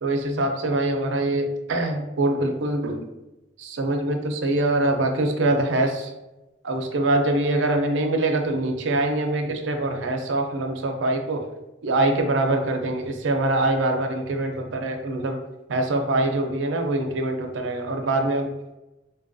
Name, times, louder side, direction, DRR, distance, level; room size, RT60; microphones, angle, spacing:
voice 1, 0.0-3.1 3.6-6.1 6.6-11.4 11.8-15.4 15.7-18.5, right 2 dB, 75° right, 4 dB, 0.4 m, -24 dB
4.0 x 2.3 x 2.5 m, 1.0 s
head